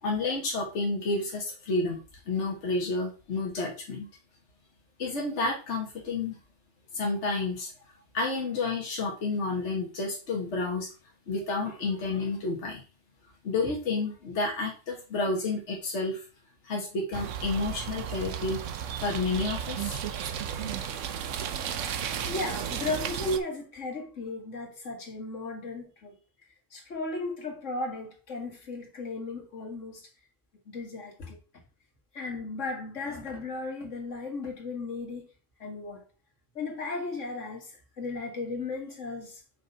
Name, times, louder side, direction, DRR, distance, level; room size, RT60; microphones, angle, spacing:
voice 1, 0.0-2.0 2.3-4.1 5.0-6.4 6.9-7.7 8.1-10.9 11.3-12.8 13.4-16.2 16.6-18.6 19.0-20.0, left 3 dB, 70° left, 1.5 m, -30 dB
sound 1, 17.1-23.4, right 8 dB, 85° right, 1.0 m, -34 dB
voice 2, 22.2-26.2 26.7-30.1 30.7-31.4 32.1-35.3 35.6-36.0 36.6-39.4, left 3 dB, 85° left, 2.0 m, -35 dB
5.4 x 4.0 x 5.4 m
omnidirectional pair, 1.2 m